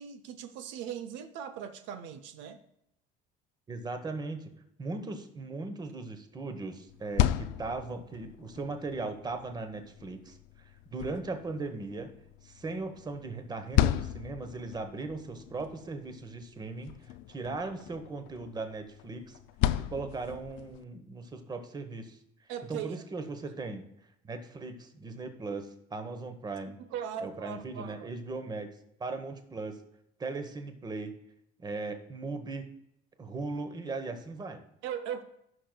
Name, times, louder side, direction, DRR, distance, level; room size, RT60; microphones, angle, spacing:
voice 1, 0.0-2.6 22.5-23.0 26.9-28.1 34.8-35.2, right 9 dB, 75° right, 9 dB, 0.7 m, -39 dB
voice 2, 3.7-4.5 4.8-12.1 12.4-17.0 17.3-19.4 19.8-22.2 22.7-23.8 24.2-26.8 27.2-28.7 29.0-29.8 30.2-31.2 31.6-32.7 33.2-34.6, right 3 dB, 20° right, 7 dB, 1.0 m, -38 dB
sound 1, 6.9-20.8, left 12 dB, 90° left, 0.5 m, -35 dB
15.5 x 6.0 x 2.3 m, 0.76 s
cardioid pair, 125°, 19 cm